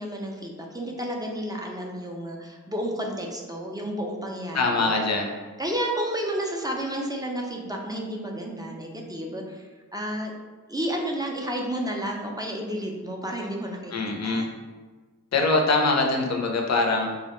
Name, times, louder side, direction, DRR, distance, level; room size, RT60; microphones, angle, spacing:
voice 1, 0.0-4.9 5.6-10.3 10.7-14.5, equal, 10° right, 0 dB, 0.3 m, -31 dB
voice 2, 4.5-5.3 13.9-14.4 15.3-17.1, left 3 dB, 55° left, 2 dB, 0.5 m, -23 dB
2.3 x 2.1 x 2.9 m, 1.4 s
cardioid pair, 60°, 33 cm